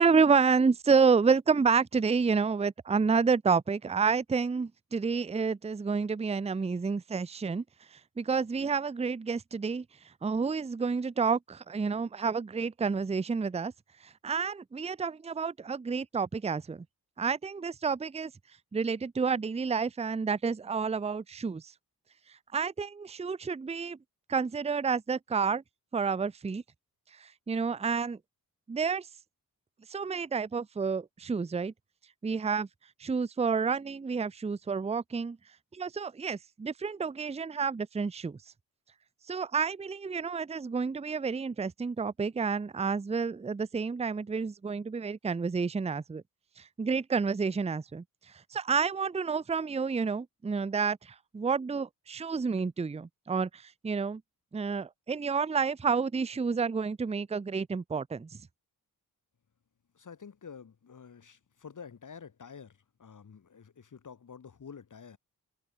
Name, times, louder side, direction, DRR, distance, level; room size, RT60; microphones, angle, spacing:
voice 1, 0.0-7.6 7.9-9.8 10.2-13.7 14.0-16.8 17.2-18.3 18.7-21.7 22.5-24.0 24.3-25.6 25.9-26.6 27.1-28.2 28.7-29.1 29.9-31.7 32.2-32.7 33.0-35.4 35.7-38.4 39.3-46.2 46.6-48.0 48.5-54.2 54.5-58.4, right 5 dB, 20° right, 0.6 m, -29 dB
voice 2, 59.9-65.2, left 6 dB, 55° left, 4.0 m, -49 dB
wide cardioid pair, 95°, 36 cm